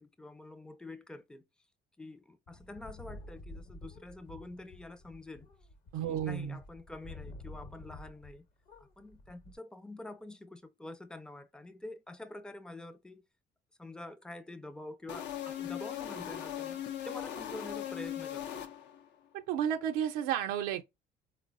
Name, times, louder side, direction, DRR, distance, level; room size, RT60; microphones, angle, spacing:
voice 1, 0.0-1.4 2.0-5.5 6.0-8.5 8.8-13.3 13.8-18.6, left 2 dB, 5° left, 0.4 m, -47 dB
sound 1, 2.5-8.4 8.6-9.6, left 2 dB, 45° left, 0.9 m, -50 dB
voice 2, 5.9-6.6 19.3-20.8, right 9 dB, 90° right, 0.5 m, -32 dB
sound 2, 15.1-19.1, left 10 dB, 65° left, 0.5 m, -39 dB
3.8 x 2.0 x 2.5 m
supercardioid pair, 90°, 20 cm